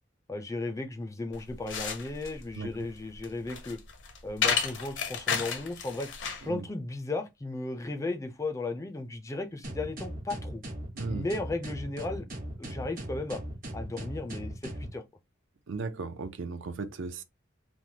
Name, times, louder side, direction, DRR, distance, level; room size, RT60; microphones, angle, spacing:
voice 1, 0.3-3.8 4.2-6.1 6.4-10.6 11.1-12.3 12.6-13.4 13.7-15.0, left 2 dB, 15° left, 0.3 m, -35 dB
sound 1, 1.3-6.5, left 6 dB, 70° left, 0.6 m, -32 dB
sound 2, 9.6-14.9, right 1 dB, 45° right, 0.8 m, -39 dB
voice 2, 10.9-11.3 15.7-17.2, right 4 dB, 75° right, 0.4 m, -36 dB
3.1 x 2.1 x 2.7 m
head